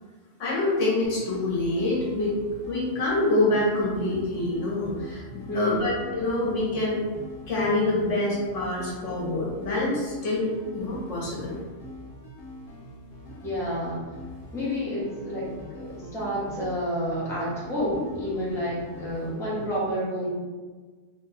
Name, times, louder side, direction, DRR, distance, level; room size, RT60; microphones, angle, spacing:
voice 1, 0.4-2.3 2.6-7.0 7.5-11.5 19.2-19.3, left 2 dB, 75° left, -5 dB, 1.2 m, -26 dB
sound 1, 1.0-19.7, left 1 dB, 55° left, 0.7 m, -43 dB
voice 2, 5.5-5.9 11.2-11.3 13.4-14.0 14.5-20.3, equal, 5° left, -8 dB, 0.7 m, -30 dB
2.8 x 2.3 x 3.3 m, 1.4 s
omnidirectional pair, 1.3 m